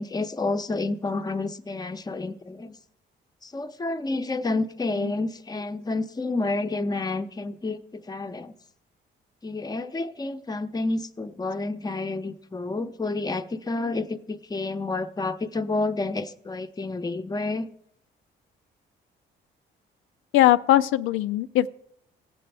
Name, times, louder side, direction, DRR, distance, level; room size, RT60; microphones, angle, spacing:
voice 1, 0.0-2.8 3.4-8.5 9.4-17.7, left 3 dB, 20° left, 8 dB, 0.7 m, -29 dB
voice 2, 20.3-21.7, left 14 dB, 90° left, 12 dB, 0.4 m, -20 dB
18.5 x 7.6 x 3.4 m, 0.74 s
cardioid pair, 90°, 20 cm